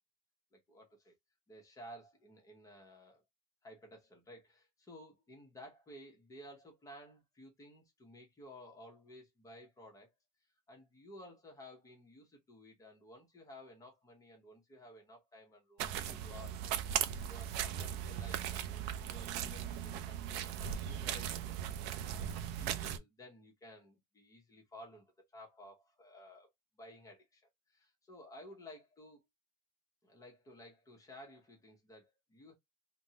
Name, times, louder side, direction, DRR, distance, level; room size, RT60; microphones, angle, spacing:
voice 1, 0.5-1.1 1.5-3.2 3.6-10.1 10.7-16.6 17.0-21.5 22.0-26.5 26.7-27.4 27.7-29.3 30.0-32.5, left 1 dB, 15° left, 0.9 m, -55 dB
sound 1, 15.8-23.0, right 10 dB, 70° right, 0.5 m, -38 dB
3.4 x 2.1 x 2.7 m
cardioid pair, 170°, 19 cm